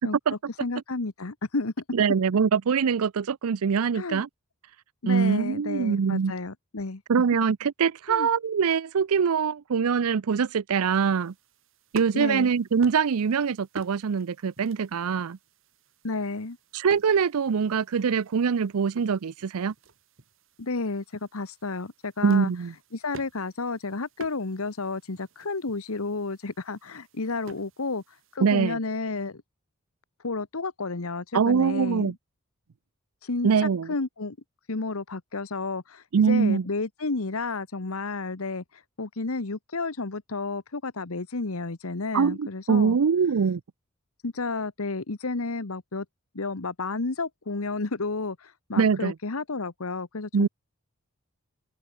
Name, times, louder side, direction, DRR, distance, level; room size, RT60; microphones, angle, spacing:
voice 1, 0.6-1.7 3.9-4.2 5.0-7.0 8.1-8.3 12.1-12.5 16.0-16.6 20.6-22.5 22.9-29.4 30.2-32.1 33.2-34.4 34.7-43.0 44.2-46.0 46.3-50.5, left 3 dB, 75° left, 1.2 m, -31 dB
voice 2, 1.9-4.3 5.1-6.3 7.1-11.3 11.9-15.4 16.7-19.7 22.2-22.7 28.4-28.8 31.3-32.1 33.4-33.9 36.1-36.6 42.1-43.6 48.8-49.1 50.3-50.5, right 6 dB, 80° right, 0.5 m, -23 dB
sound 1, 10.8-28.4, right 3 dB, 60° right, 1.8 m, -49 dB
head